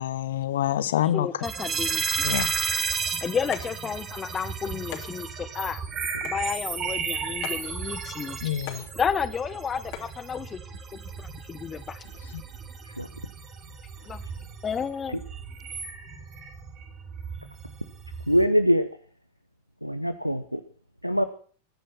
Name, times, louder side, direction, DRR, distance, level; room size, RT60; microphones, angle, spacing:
voice 1, 0.0-1.4 2.2-2.6 8.4-8.9 12.3-12.4, left 11 dB, 60° left, 16 dB, 1.0 m, -27 dB
voice 2, 1.1-2.3 3.2-5.8 6.2-8.4 8.9-10.6 11.2-12.0 14.0-14.2 14.6-15.2, left 6 dB, 20° left, 13 dB, 1.4 m, -31 dB
sound 1, 1.4-18.5, right 6 dB, 30° right, 2.9 m, -34 dB
sound 2, 3.4-10.2, left 11 dB, 45° left, 3.1 m, -44 dB
voice 3, 18.3-18.9 19.8-20.6 21.0-21.2, equal, 90° right, 13 dB, 0.9 m, -23 dB
22.0 x 10.0 x 6.0 m, 0.42 s
figure-of-eight pair, 90°, 0 cm